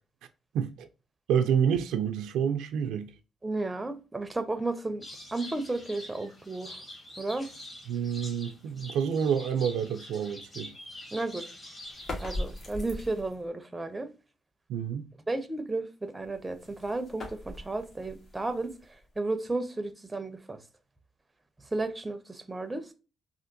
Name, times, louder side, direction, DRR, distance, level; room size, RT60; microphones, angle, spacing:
voice 1, 0.5-0.9 1.3-3.1 7.9-10.7 14.7-15.1, right 8 dB, 85° right, 0.4 m, -28 dB
voice 2, 3.4-5.1 5.3-6.8 7.2-7.5 11.1-11.5 12.2-14.1 15.3-18.7 19.2-20.6 21.7-22.9, right 2 dB, 15° right, 0.5 m, -33 dB
sound 1, 5.0-12.7, left 1 dB, 30° left, 1.6 m, -46 dB
sound 2, 11.9-13.5 16.2-19.2, left 1 dB, 55° left, 1.3 m, -40 dB
3.4 x 2.5 x 2.5 m
cardioid pair, 90°, 0 cm